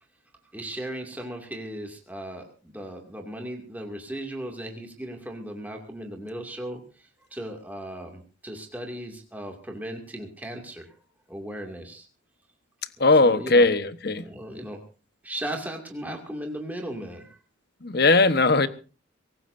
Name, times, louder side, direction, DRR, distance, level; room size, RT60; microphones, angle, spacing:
voice 1, 0.5-11.0 11.3-12.1 13.2-13.7 14.3-14.8 15.2-17.4, right 1 dB, 10° right, 2 dB, 2.3 m, -37 dB
voice 2, 13.0-14.3 17.8-18.7, left 3 dB, 50° left, 12 dB, 1.1 m, -19 dB
23.0 x 18.0 x 2.7 m, 0.35 s
head